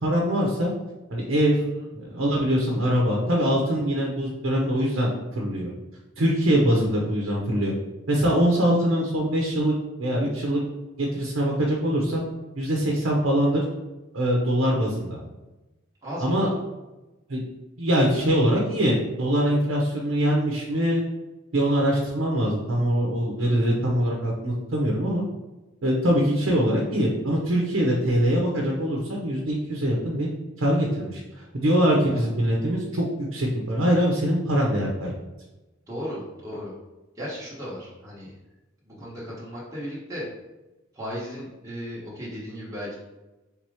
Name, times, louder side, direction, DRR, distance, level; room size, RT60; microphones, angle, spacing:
voice 1, 0.0-0.7 1.1-1.6 2.0-5.7 6.2-7.7 8.1-9.7 10.0-10.6 11.0-12.2 12.6-13.6 14.1-15.2 16.2-16.5 17.3-17.4 17.8-21.0 21.5-25.2 25.8-30.3 30.6-31.2 31.5-35.1, equal, 75° right, -2 dB, 0.8 m, -23 dB
voice 2, 1.5-1.9 16.0-16.6 23.4-23.7 32.0-32.4 35.9-36.7 37.2-38.3 38.9-40.2 40.9-43.0, equal, 15° right, -8 dB, 1.2 m, -36 dB
3.5 x 2.9 x 4.7 m, 1.1 s
head